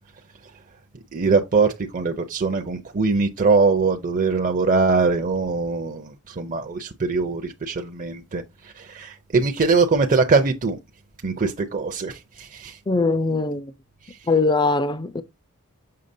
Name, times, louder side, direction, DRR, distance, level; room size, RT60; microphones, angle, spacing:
voice 1, 1.1-10.8 11.2-12.8, right 4 dB, 35° right, 0.6 m, -22 dB
voice 2, 12.9-13.7 14.3-15.2, left 3 dB, 20° left, 0.4 m, -21 dB
6.6 x 5.6 x 2.6 m
head